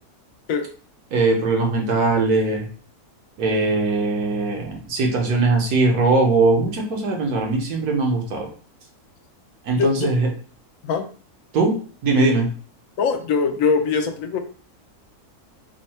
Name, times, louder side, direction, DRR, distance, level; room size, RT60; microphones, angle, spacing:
voice 1, 1.1-2.7 3.4-8.5 9.6-10.3 11.5-11.7 12.0-12.5, right 3 dB, 85° right, 1 dB, 1.4 m, -20 dB
voice 2, 9.8-10.1 10.8-11.1 13.0-14.4, left 5 dB, 70° left, 6 dB, 0.9 m, -21 dB
3.6 x 2.1 x 4.2 m, 0.42 s
omnidirectional pair, 1.6 m